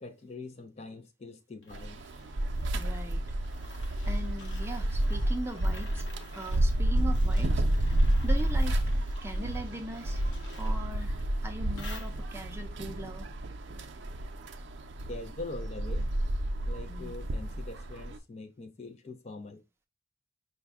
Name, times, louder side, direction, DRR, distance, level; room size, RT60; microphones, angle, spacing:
voice 1, 0.0-2.0 15.0-16.1 16.6-19.6, left 2 dB, 35° left, 0.4 m, -43 dB
sound 1, 1.6-12.6, left 2 dB, 75° left, 0.9 m, -52 dB
sound 2, 1.7-18.2, right 1 dB, 75° right, 0.5 m, -30 dB
voice 2, 2.7-3.2 4.0-6.1 6.3-8.8 9.2-10.2 10.6-13.3 16.9-17.1, right 1 dB, 15° right, 0.5 m, -40 dB
5.1 x 2.2 x 3.5 m
head